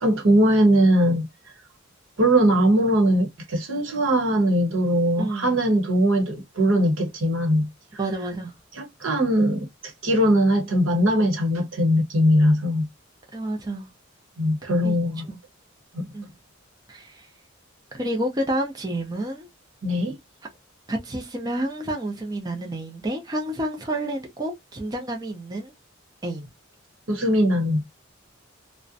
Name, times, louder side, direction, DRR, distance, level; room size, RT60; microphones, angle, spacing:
voice 1, 0.0-1.3 2.2-7.7 8.8-9.7 10.0-12.9 14.4-15.2 15.9-16.1 19.8-20.2 27.1-27.8, equal, 70° right, 0.9 m, -20 dB
voice 2, 5.2-5.6 8.0-8.5 13.3-13.9 14.6-14.9 15.3-15.4 16.1-16.3 16.9-17.3 17.9-19.5 20.9-25.7 26.2-26.5, right 1 dB, 20° right, 0.4 m, -29 dB
2.4 x 2.1 x 2.4 m
head